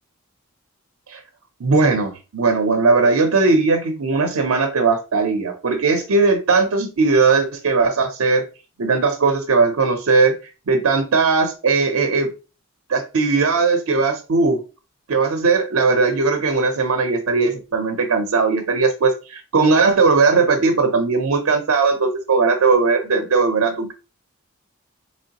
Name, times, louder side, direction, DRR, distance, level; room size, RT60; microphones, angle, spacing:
voice 1, 1.6-8.5 8.8-10.4 10.7-12.3 12.9-14.6 15.1-23.9, right 4 dB, 80° right, 0.5 m, -18 dB
3.7 x 3.1 x 2.8 m
head